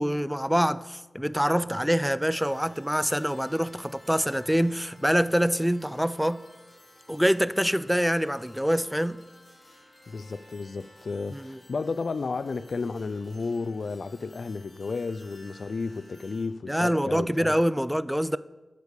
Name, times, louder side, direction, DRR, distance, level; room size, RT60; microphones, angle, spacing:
voice 1, 0.0-6.4 7.1-9.2 11.3-11.6 16.7-18.4, equal, ahead, 0.3 m, -25 dB
sound 1, 2.4-16.5, left 1 dB, 40° left, 2.9 m, -54 dB
voice 2, 10.1-17.5, left 4 dB, 70° left, 0.4 m, -32 dB
11.5 x 4.8 x 6.7 m
wide cardioid pair, 100°, 0 cm